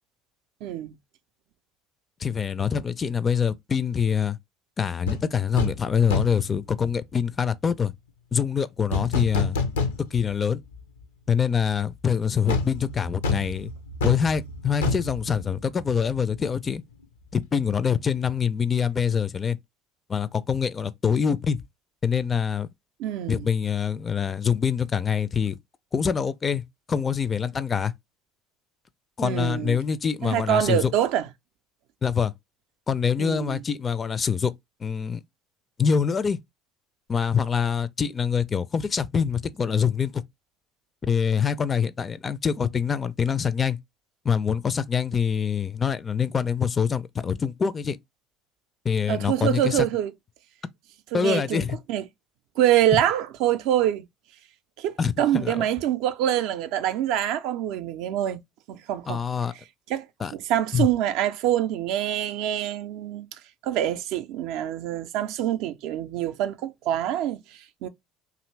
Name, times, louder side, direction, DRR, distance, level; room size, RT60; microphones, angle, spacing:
voice 1, 0.6-0.9 23.0-23.5 29.2-29.8 30.2-31.3 33.2-33.6 49.1-50.1 51.1-52.0 52.6-54.0 54.8-58.4 58.7-59.2 59.9-60.1 60.3-67.9, right 11 dB, 65° right, 0.4 m, -25 dB
voice 2, 2.2-4.4 4.8-7.9 8.3-9.6 10.1-10.6 11.3-13.7 14.0-16.8 17.3-19.6 20.1-21.6 22.0-22.7 23.3-25.6 25.9-26.6 26.9-27.9 29.2-30.9 32.0-32.3 32.9-34.5 34.8-35.2 35.8-36.4 37.1-40.2 41.0-43.8 44.2-48.0 48.8-49.9 51.1-51.8 55.0-55.6 59.1-59.5 60.2-60.3 60.7-60.9, left 7 dB, 30° left, 0.4 m, -25 dB
sound 1, 5.1-5.2 5.6-5.8 6.1-6.5 8.9-10.3 10.7-10.8 12.5-16.1 16.4-16.6, left 4 dB, 85° left, 0.5 m, -27 dB
2.7 x 2.5 x 3.1 m
hypercardioid pair, 70°, 0 cm